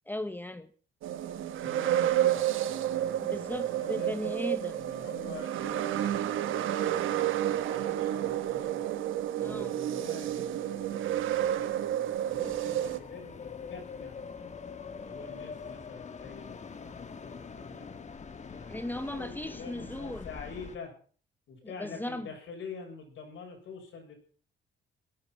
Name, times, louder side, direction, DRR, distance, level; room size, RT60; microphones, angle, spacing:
voice 1, 0.1-0.7 3.2-4.8 9.4-9.7 18.7-20.3 21.6-22.3, left 1 dB, 10° left, 1.0 m, -37 dB
sound 1, 1.0-13.0, right 11 dB, 85° right, 1.2 m, -30 dB
voice 2, 1.6-4.2 4.7-8.8 9.3-14.2 14.9-17.9 18.5-20.9 21.5-24.1, left 5 dB, 75° left, 6.8 m, -47 dB
sound 2, 12.3-20.8, left 5 dB, 35° left, 1.6 m, -44 dB
18.0 x 11.0 x 5.8 m
cardioid pair, 90°, 20 cm